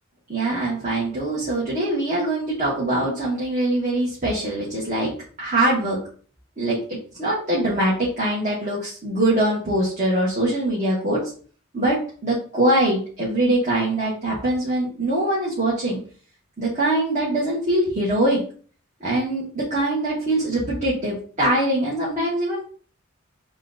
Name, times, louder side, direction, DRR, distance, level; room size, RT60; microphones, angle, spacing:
voice 1, 0.3-5.1 5.4-6.0 6.6-11.2 11.7-12.0 12.2-16.0 16.6-18.4 19.0-22.7, right 1 dB, 35° right, -6 dB, 1.3 m, -23 dB
6.8 x 2.5 x 2.6 m, 0.42 s
head